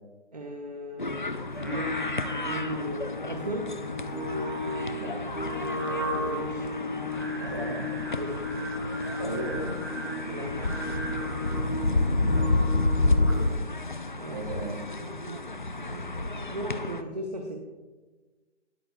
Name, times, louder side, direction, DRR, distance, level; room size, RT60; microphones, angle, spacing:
voice 1, 0.3-1.3 1.7-2.1 2.4-3.7 6.0-6.7 8.2-8.4 10.3-10.8 13.4-13.7 14.1-14.5 15.0-17.6, right 1 dB, 35° right, 2 dB, 0.8 m, -37 dB
sound 1, 1.0-17.0, left 2 dB, 45° left, 0.4 m, -30 dB
Singing, 1.5-13.6, left 1 dB, 15° left, 0.8 m, -34 dB
voice 2, 7.4-7.9 9.2-9.7 11.8-12.6 14.3-14.8, right 2 dB, 15° right, -4 dB, 2.5 m, -36 dB
18.5 x 8.8 x 2.3 m, 1.3 s
figure-of-eight pair, 170°, 36 cm